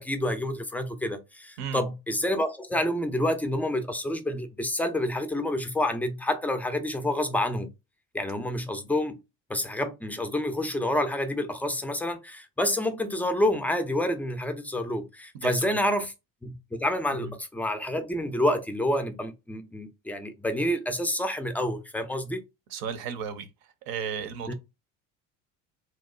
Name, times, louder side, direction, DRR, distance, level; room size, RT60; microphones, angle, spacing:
voice 1, 0.0-7.7 8.1-9.2 9.5-16.1 16.4-22.4 24.5-24.6, left 1 dB, 5° left, 0.3 m, -28 dB
voice 2, 15.3-15.8 17.1-17.3 22.7-24.5, right 7 dB, 70° right, 0.7 m, -35 dB
2.9 x 2.0 x 2.3 m
supercardioid pair, 90°, 37 cm